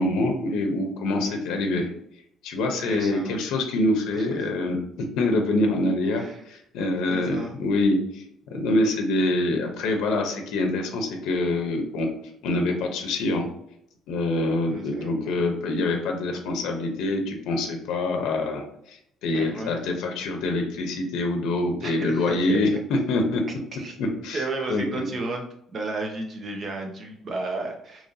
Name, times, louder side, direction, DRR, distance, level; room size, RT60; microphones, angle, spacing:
voice 1, 0.0-1.9 2.4-8.2 8.5-12.1 12.4-13.4 14.1-23.4 24.0-25.0, left 2 dB, 80° left, 3 dB, 0.6 m, -25 dB
voice 2, 2.8-3.4 4.3-4.4 6.2-6.4 7.1-7.5 14.7-15.4 19.3-19.7 21.8-22.6 23.8-24.0 24.3-25.4 25.7-28.1, right 2 dB, 30° right, 3 dB, 0.6 m, -33 dB
2.9 x 2.7 x 3.9 m, 0.73 s
cardioid pair, 180°, 0 cm